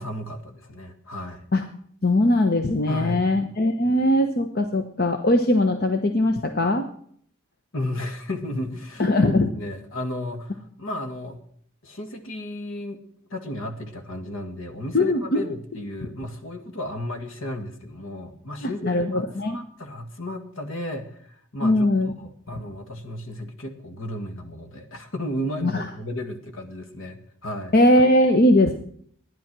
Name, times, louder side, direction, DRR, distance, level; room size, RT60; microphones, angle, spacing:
voice 1, 0.0-1.4 2.9-3.3 7.7-11.4 11.8-13.0 13.3-27.7, left 1 dB, 65° left, 6 dB, 1.9 m, -34 dB
voice 2, 2.0-6.9 9.0-9.5 14.9-15.4 18.6-19.6 21.6-22.1 25.6-25.8 27.7-28.7, left 1 dB, 45° left, 6 dB, 0.9 m, -20 dB
13.0 x 10.5 x 6.0 m, 0.62 s
head